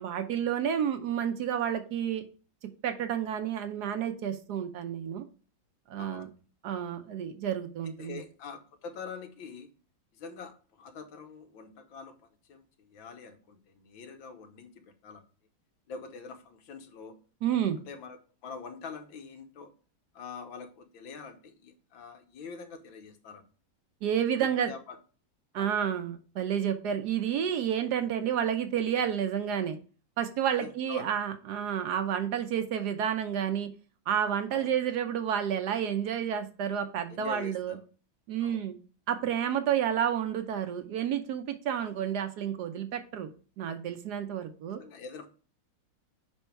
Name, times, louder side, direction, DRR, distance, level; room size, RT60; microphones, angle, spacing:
voice 1, 0.0-2.2 2.8-5.2 5.9-6.3 6.6-8.2 17.4-17.8 24.0-24.7 25.5-29.8 30.2-33.7 34.1-37.7 38.3-38.8 39.1-43.3 43.6-44.8, right 9 dB, 70° right, 8 dB, 1.1 m, -30 dB
voice 2, 7.8-9.7 10.1-15.2 15.9-17.2 17.6-19.7 20.1-23.5 24.4-25.0 25.5-25.8 30.5-31.1 34.5-34.7 37.1-37.8 38.4-38.6 44.7-45.3, left 5 dB, 85° left, 6 dB, 1.8 m, -45 dB
5.3 x 4.4 x 4.5 m, 0.37 s
omnidirectional pair, 2.1 m